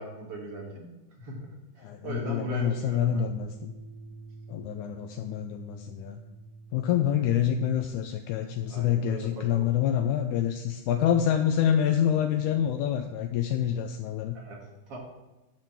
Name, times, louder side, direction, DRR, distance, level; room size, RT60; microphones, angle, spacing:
voice 1, 0.0-3.2 8.7-9.7 14.3-15.0, right 2 dB, 50° right, -2 dB, 2.5 m, -39 dB
voice 2, 1.8-3.7 4.5-6.2 6.7-14.4, left 9 dB, 80° left, 6 dB, 1.9 m, -27 dB
sound 1, 3.4-9.6, right 3 dB, 85° right, 2.7 m, -48 dB
10.5 x 4.0 x 7.2 m, 1.1 s
omnidirectional pair, 3.7 m